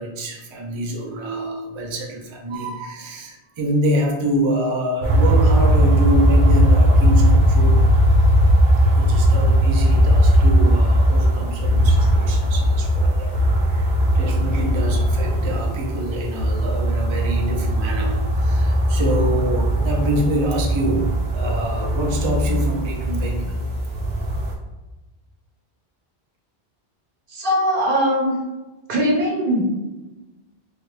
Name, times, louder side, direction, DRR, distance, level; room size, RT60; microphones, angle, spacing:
voice 1, 0.0-7.8 8.9-23.6, right 1 dB, 45° right, 0 dB, 0.4 m, -26 dB
sound 1, 5.0-24.5, equal, 80° right, 1.0 m, -18 dB
voice 2, 27.3-28.4 28.9-29.6, equal, 60° right, -2 dB, 0.9 m, -20 dB
3.2 x 2.4 x 3.1 m, 1.1 s
omnidirectional pair, 1.0 m